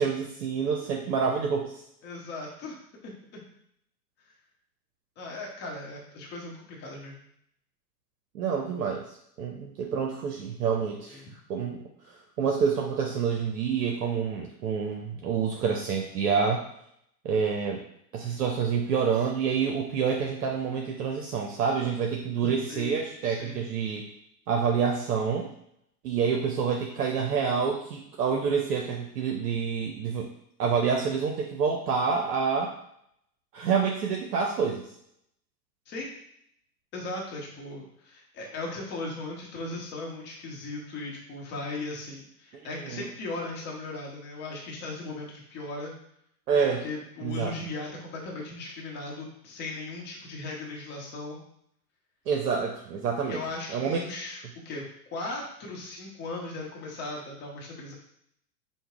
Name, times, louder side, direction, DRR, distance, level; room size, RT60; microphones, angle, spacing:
voice 1, 0.0-1.7 8.3-9.0 9.4-11.2 11.5-16.6 17.2-17.8 18.1-24.0 24.5-25.5 26.0-30.3 30.6-32.7 33.5-34.9 42.8-43.0 46.5-46.8 47.2-47.5 52.3-53.4 53.7-54.0, right 6 dB, 70° right, 0 dB, 0.7 m, -27 dB
voice 2, 2.0-3.4 5.2-7.2 11.1-11.3 22.4-23.7 35.9-36.1 36.9-45.9 46.6-51.4 53.3-54.8 55.1-57.9, left 2 dB, 20° left, -2 dB, 0.8 m, -38 dB
5.2 x 2.1 x 2.4 m, 0.72 s
hypercardioid pair, 105°, 48 cm